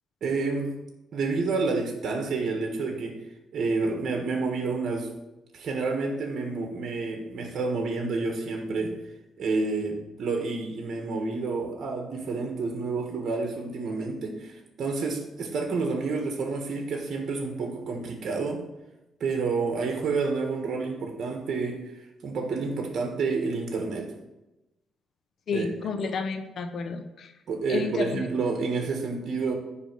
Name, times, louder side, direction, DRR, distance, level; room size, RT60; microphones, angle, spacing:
voice 1, 0.2-0.7 1.1-3.2 3.5-5.1 5.5-9.0 9.4-18.6 19.2-21.8 22.2-24.1 25.5-25.7 27.5-29.5, right 4 dB, 55° right, 3 dB, 1.5 m, -29 dB
voice 2, 25.5-27.3 27.7-28.3, left 4 dB, 60° left, 7 dB, 0.8 m, -31 dB
9.9 x 3.5 x 6.6 m, 0.98 s
cardioid pair, 90°, 0 cm